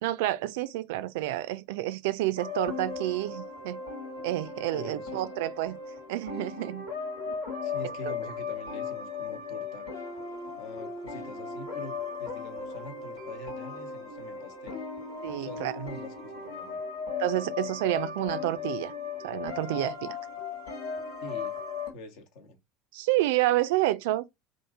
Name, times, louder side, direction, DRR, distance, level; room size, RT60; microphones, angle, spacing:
voice 1, 0.0-3.8 4.2-5.8 6.1-6.9 7.3-7.4 8.1-8.2 15.2-15.7 17.2-18.9 19.2-20.2 22.9-24.2, right 15 dB, 65° right, 0.3 m, -29 dB
sound 1, 2.4-21.9, left 5 dB, 80° left, 1.5 m, -37 dB
voice 2, 4.7-5.2 7.6-9.9 10.6-14.8 15.4-16.8 21.2-21.6 21.9-22.6, left 1 dB, 60° left, 0.9 m, -44 dB
2.8 x 2.6 x 3.5 m
figure-of-eight pair, 70°, 0 cm